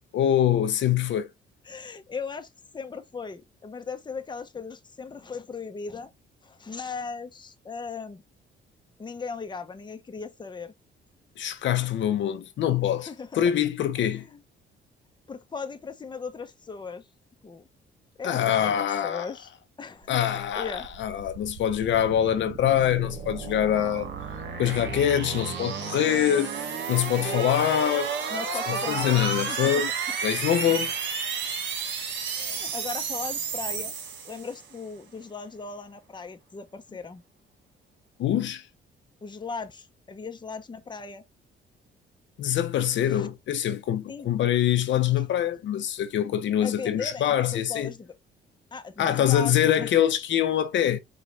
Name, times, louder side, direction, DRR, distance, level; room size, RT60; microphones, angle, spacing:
voice 1, 0.1-1.3 11.4-13.1 13.3-14.3 18.2-19.3 20.1-24.1 24.6-26.5 26.9-28.1 28.7-29.9 30.2-31.0 38.2-38.6 42.4-47.9 49.0-51.0, left 10 dB, 70° left, 0.8 m, -24 dB
voice 2, 1.6-6.1 6.4-8.2 9.0-10.7 13.0-13.4 14.0-14.1 14.3-14.4 15.3-17.0 17.4-17.7 18.2-19.5 19.8-20.2 20.6-20.9 27.2-27.5 28.3-29.8 32.3-33.9 34.2-37.2 39.2-41.2 43.1-43.3 44.1-44.3 46.6-48.1 48.7-49.9, left 5 dB, 20° left, 0.8 m, -38 dB
sound 1, 20.4-34.7, right 6 dB, 65° right, 1.6 m, -32 dB
5.0 x 2.4 x 4.1 m
cardioid pair, 90°, 20 cm